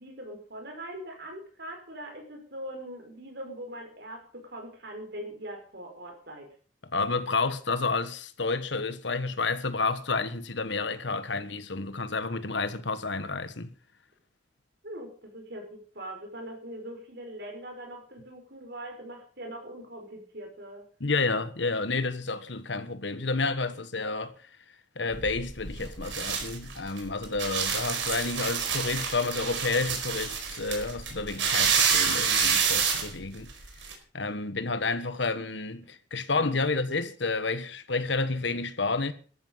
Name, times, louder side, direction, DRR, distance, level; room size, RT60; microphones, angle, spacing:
voice 1, 0.0-6.5 14.8-20.8 25.8-25.9, right 1 dB, 55° right, 5.8 m, -42 dB
voice 2, 6.9-13.7 21.0-24.3 24.9-33.5 34.1-39.1, left 3 dB, 70° left, 1.4 m, -30 dB
sound 1, 25.1-33.9, right 6 dB, 75° right, 4.7 m, -28 dB
14.0 x 12.5 x 5.6 m
head